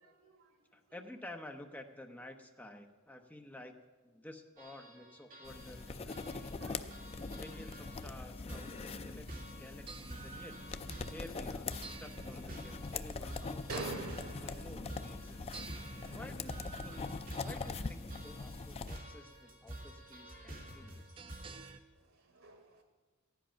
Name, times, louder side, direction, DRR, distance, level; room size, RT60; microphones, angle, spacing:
voice 1, 0.2-0.6 6.6-6.9 13.7-14.7 22.0-22.8, right 3 dB, 85° right, 5 dB, 1.8 m, -45 dB
voice 2, 0.7-3.7 4.0-6.6 7.3-9.3 9.6-10.6 11.1-14.0 14.4-15.5 16.1-17.1 17.4-21.3, left 1 dB, 10° left, 4 dB, 0.9 m, -51 dB
sound 1, 4.6-21.7, right 1 dB, 40° right, 2.4 m, -50 dB
sound 2, 5.4-19.0, left 4 dB, 30° left, 0.4 m, -43 dB
sound 3, 9.3-21.8, right 4 dB, 25° right, 0.5 m, -54 dB
15.0 x 10.5 x 5.7 m, 1.3 s
head